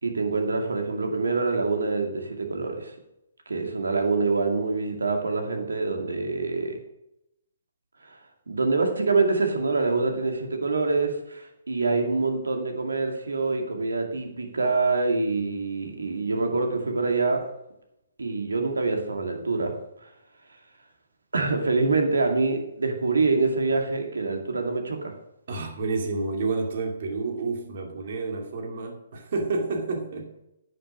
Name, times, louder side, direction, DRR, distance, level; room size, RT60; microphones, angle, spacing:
voice 1, 0.0-2.9 3.5-6.8 8.1-8.2 8.5-17.4 18.2-19.7 20.0-20.1 21.3-25.1, right 3 dB, 85° right, 3 dB, 2.2 m, -25 dB
voice 2, 25.5-30.3, right 3 dB, 55° right, 3 dB, 2.4 m, -29 dB
9.9 x 6.7 x 6.4 m, 0.84 s
hypercardioid pair, 140°, 0 cm